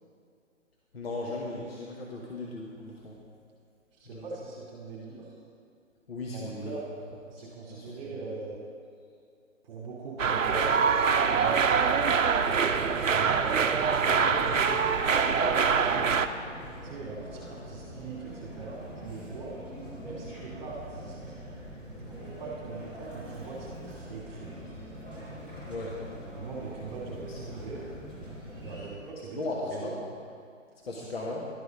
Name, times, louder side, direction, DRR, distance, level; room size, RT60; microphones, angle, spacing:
voice 1, 0.9-3.2 4.0-4.4 6.1-6.8 7.4-8.1 13.9-14.8 25.7-26.0 27.3-27.4 29.3-30.0 30.8-31.5, left 2 dB, 50° left, -3 dB, 1.4 m, -37 dB
voice 2, 4.0-5.3 6.3-6.8 7.3-8.6 9.6-13.5 14.4-14.7 15.1-16.2 16.8-19.5 20.0-21.3 22.0-24.7 26.3-27.8 28.6-29.4 29.8-30.0, right 4 dB, 35° right, -6 dB, 2.3 m, -41 dB
sound 1, 10.2-16.3, right 6 dB, 75° right, 0.7 m, -24 dB
sound 2, 12.6-28.9, equal, 15° left, 2.4 m, -43 dB
11.5 x 8.1 x 5.2 m, 2.4 s
figure-of-eight pair, 140°, 39 cm